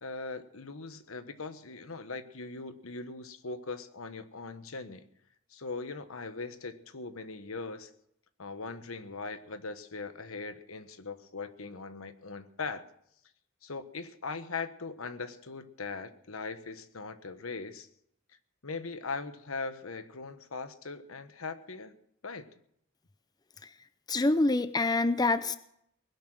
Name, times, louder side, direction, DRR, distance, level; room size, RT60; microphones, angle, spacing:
voice 1, 0.0-5.0 5.5-7.9 8.4-12.8 13.6-17.9 18.6-21.9 22.2-22.5, left 4 dB, 80° left, 10 dB, 1.3 m, -40 dB
voice 2, 24.1-25.6, left 2 dB, 20° left, 12 dB, 0.6 m, -26 dB
20.5 x 11.5 x 6.2 m, 0.72 s
head